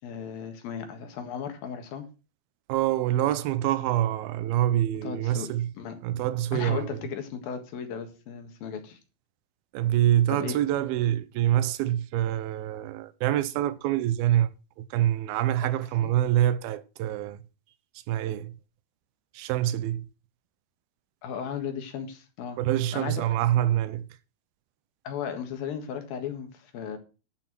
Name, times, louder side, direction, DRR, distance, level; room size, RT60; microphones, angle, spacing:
voice 1, 0.0-2.1 5.0-6.0 6.5-9.0 10.3-10.6 16.0-16.1 21.2-22.6 22.9-23.2 25.1-27.0, left 7 dB, 75° left, 3.5 m, -36 dB
voice 2, 2.7-5.7 6.0-7.0 9.7-14.5 14.8-17.4 18.1-18.6 19.3-20.1 22.6-24.1, right 12 dB, 85° right, 2.6 m, -26 dB
11.5 x 5.9 x 6.1 m
omnidirectional pair, 4.3 m